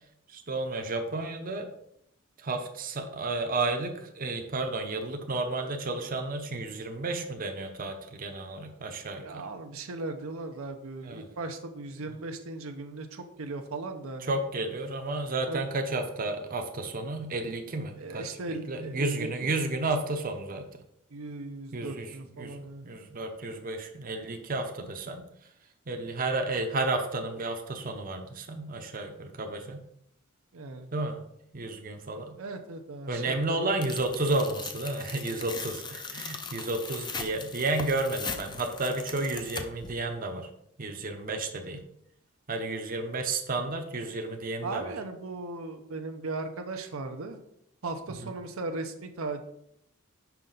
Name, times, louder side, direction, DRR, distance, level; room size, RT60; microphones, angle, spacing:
voice 1, 0.3-1.7 2.4-9.4 11.0-11.2 14.3-20.6 21.7-22.1 22.4-25.3 25.9-29.8 30.9-31.2 31.5-32.4 33.1-40.5 40.8-41.8 42.5-44.9, right 2 dB, 45° right, 4 dB, 0.7 m, -32 dB
voice 2, 9.2-14.3 15.5-15.7 18.0-19.6 21.1-22.9 30.5-30.9 32.4-33.7 44.6-47.4 47.8-49.4, right 3 dB, 80° right, 6 dB, 0.7 m, -37 dB
Tearing, 33.8-39.9, left 5 dB, 20° left, 0.5 m, -39 dB
5.8 x 5.4 x 3.9 m, 0.76 s
head